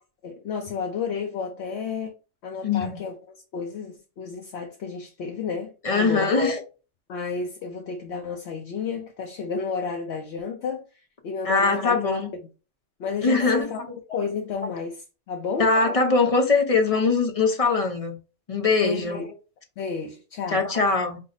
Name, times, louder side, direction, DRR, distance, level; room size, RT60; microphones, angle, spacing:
voice 1, 0.2-2.1 2.4-6.4 7.1-12.0 13.0-13.8 14.1-15.7 18.8-19.3 19.8-20.7, left 5 dB, 60° left, 0.9 m, -31 dB
voice 2, 2.6-3.0 5.8-6.6 11.4-12.3 13.2-13.7 15.6-18.2 18.5-19.2 20.5-21.2, left 4 dB, 35° left, 0.7 m, -22 dB
5.4 x 2.0 x 3.9 m
omnidirectional pair, 1.4 m